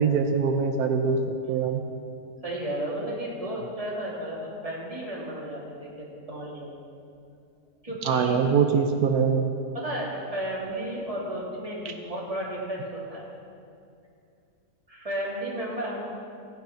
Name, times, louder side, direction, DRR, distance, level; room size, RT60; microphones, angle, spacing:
voice 1, 0.0-1.8 8.0-9.5 11.8-11.9, right 6 dB, 80° right, 4 dB, 1.3 m, -23 dB
voice 2, 2.4-6.7 7.8-8.4 9.7-13.3 14.9-16.0, right 1 dB, 25° right, -5 dB, 2.8 m, -33 dB
15.5 x 9.4 x 5.7 m, 2.4 s
omnidirectional pair, 1.6 m